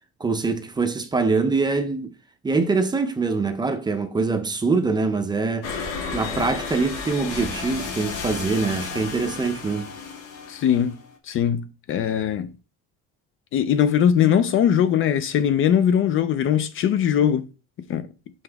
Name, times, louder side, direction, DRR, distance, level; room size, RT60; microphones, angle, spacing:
voice 1, 0.2-2.1 2.4-5.7 6.1-9.9, right 4 dB, 15° right, 0.5 m, -24 dB
sound 1, 5.6-11.1, left 5 dB, 75° left, 1.7 m, -33 dB
voice 2, 10.5-11.0 11.2-12.5 13.5-17.5 17.9-18.1, left 9 dB, 40° left, 0.5 m, -20 dB
6.0 x 5.5 x 3.4 m
cardioid pair, 180°, 31 cm